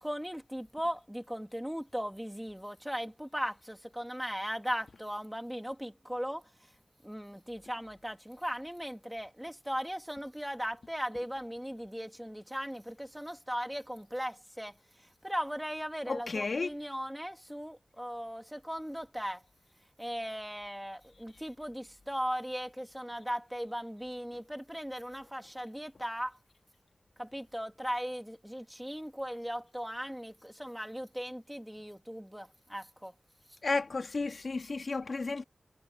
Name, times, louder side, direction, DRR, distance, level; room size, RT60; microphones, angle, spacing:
voice 1, 0.0-6.5 7.0-19.4 20.0-26.4 27.2-33.1, equal, 5° right, 2.7 m, -38 dB
voice 2, 16.1-16.7 33.6-35.4, left 3 dB, 65° left, 1.8 m, -32 dB
wide cardioid pair, 100°, 0 cm